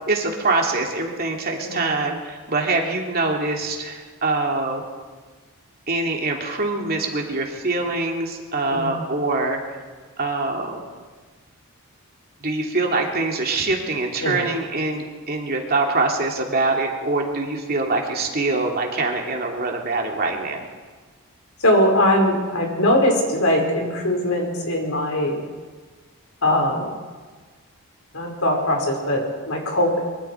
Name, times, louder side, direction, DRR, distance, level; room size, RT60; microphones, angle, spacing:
voice 1, 0.1-4.8 5.9-9.6 10.2-10.8 12.4-20.6, right 3 dB, 45° right, 1 dB, 2.8 m, -24 dB
voice 2, 1.6-1.9 8.7-9.0 14.2-14.5 21.6-25.4 26.4-26.9 28.1-30.0, left 1 dB, 70° left, 1 dB, 4.8 m, -21 dB
24.0 x 23.5 x 4.6 m, 1.4 s
head